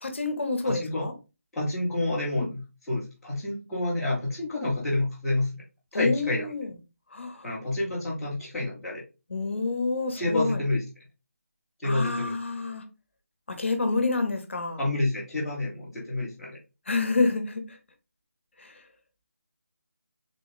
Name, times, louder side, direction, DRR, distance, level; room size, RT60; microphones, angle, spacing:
voice 1, 0.0-1.1 2.3-2.5 5.9-6.7 7.1-7.5 9.3-10.6 11.8-12.8 13.5-14.8 16.9-17.8 18.6-18.7, left 3 dB, 55° left, 7 dB, 0.8 m, -28 dB
voice 2, 0.6-1.1 1.5-5.5 5.9-6.5 7.4-9.0 10.2-10.8 11.8-12.3 14.8-16.6, left 2 dB, ahead, -13 dB, 0.8 m, -29 dB
3.8 x 2.2 x 3.9 m, 0.28 s
figure-of-eight pair, 175°, 8 cm